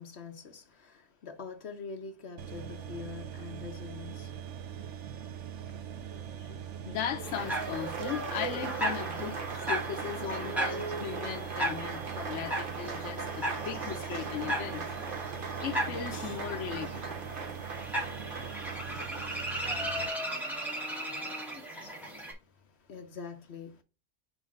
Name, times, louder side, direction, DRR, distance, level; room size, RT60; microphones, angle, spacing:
voice 1, 0.0-4.5 6.5-6.6 21.4-23.8, left 5 dB, 65° left, 1.4 m, -45 dB
sound 1, 2.4-20.1, right 8 dB, 75° right, 1.0 m, -42 dB
voice 2, 6.1-14.9 15.4-17.2, left 9 dB, 80° left, 1.1 m, -38 dB
Applause, 7.0-20.2, right 4 dB, 50° right, 1.3 m, -40 dB
sound 2, 7.2-22.3, right 1 dB, ahead, 2.5 m, -37 dB
4.7 x 4.3 x 5.2 m
omnidirectional pair, 1.2 m